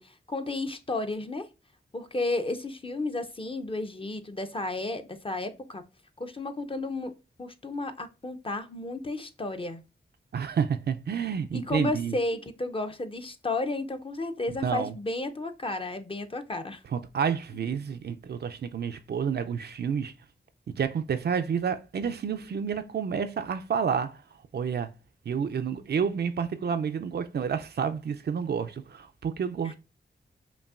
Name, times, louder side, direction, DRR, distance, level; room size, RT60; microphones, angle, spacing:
voice 1, 0.0-1.5 1.9-5.8 6.2-7.1 7.4-9.8 11.5-16.8, left 2 dB, 30° left, 0.6 m, -32 dB
voice 2, 10.3-12.2 14.6-14.9 16.9-20.1 20.8-24.2 24.5-24.9 25.3-29.7, right 7 dB, 65° right, 0.4 m, -29 dB
5.2 x 2.6 x 2.4 m
cardioid pair, 55°, 18 cm